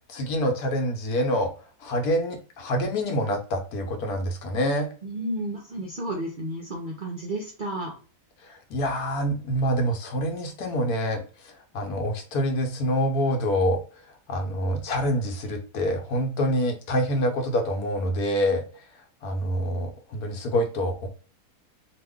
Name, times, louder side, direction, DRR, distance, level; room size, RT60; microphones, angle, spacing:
voice 1, 0.1-1.5 1.8-4.9 8.4-13.8 14.3-18.6 19.2-21.1, equal, 80° left, 4 dB, 1.3 m, -26 dB
voice 2, 5.0-7.9, right 1 dB, 60° right, -1 dB, 0.5 m, -32 dB
2.9 x 2.4 x 3.5 m, 0.37 s
omnidirectional pair, 1.6 m